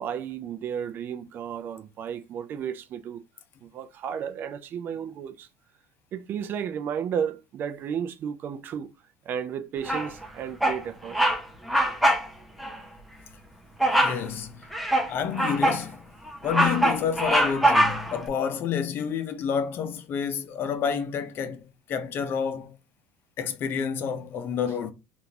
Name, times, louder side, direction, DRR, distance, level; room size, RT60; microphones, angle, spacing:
voice 1, 0.0-3.2 3.6-5.5 6.1-8.9 9.2-11.2, right 8 dB, 40° right, 0.4 m, -33 dB
Bird vocalization bird call bird song, 9.9-10.3 10.6-10.8 11.1-11.4 11.7-12.3 12.6-12.8 13.8-14.2 14.7-15.8 16.3-18.2, right 1 dB, ahead, 0.7 m, -23 dB
voice 2, 14.0-14.7 15.1-16.0 16.4-22.8 23.4-24.9, left 7 dB, 45° left, 0.6 m, -29 dB
3.6 x 2.4 x 2.8 m
supercardioid pair, 115°, 5 cm